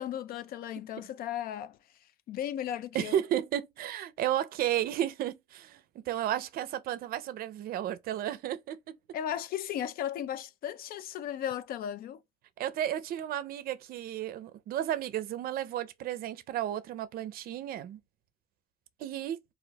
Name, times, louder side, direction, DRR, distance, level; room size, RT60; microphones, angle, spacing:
voice 1, 0.0-1.8 2.3-3.2 9.1-12.2, left 10 dB, 60° left, 0.4 m, -35 dB
voice 2, 2.9-9.0 12.6-18.0 19.0-19.4, right 11 dB, 60° right, 0.5 m, -33 dB
2.4 x 2.2 x 4.0 m
cardioid pair, 110°, 17 cm